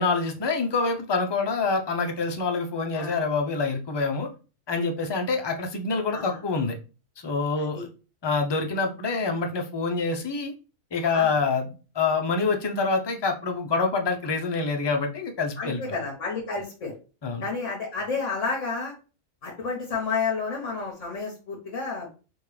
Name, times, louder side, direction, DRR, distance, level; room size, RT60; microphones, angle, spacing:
voice 1, 0.0-4.3 4.7-6.8 7.2-7.9 8.2-10.5 10.9-15.8 17.2-17.4, left 4 dB, 35° left, 3 dB, 0.4 m, -26 dB
voice 2, 15.6-16.9 17.4-18.9 19.4-22.1, left 4 dB, 65° left, -1 dB, 1.3 m, -30 dB
5.2 x 2.4 x 3.2 m, 0.34 s
omnidirectional pair, 1.4 m